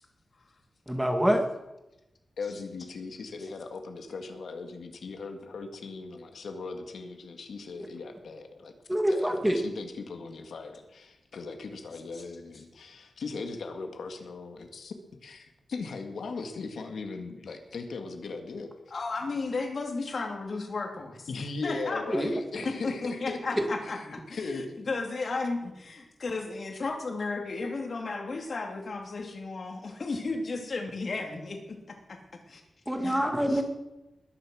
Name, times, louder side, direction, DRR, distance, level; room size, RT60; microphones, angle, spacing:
voice 1, 0.9-1.4 8.9-9.6 22.1-22.3 23.5-23.7 32.9-33.6, equal, 5° right, 5 dB, 1.7 m, -25 dB
voice 2, 2.4-8.7 9.1-14.9 15.2-18.7 21.3-24.9, left 4 dB, 75° left, 5 dB, 2.1 m, -38 dB
voice 3, 18.9-21.3 21.6-22.0 22.6-32.2 32.5-32.6 33.0-33.2 33.5-33.6, left 3 dB, 45° left, 3 dB, 2.9 m, -34 dB
20.5 x 11.0 x 6.4 m, 0.97 s
wide cardioid pair, 165°, 0 cm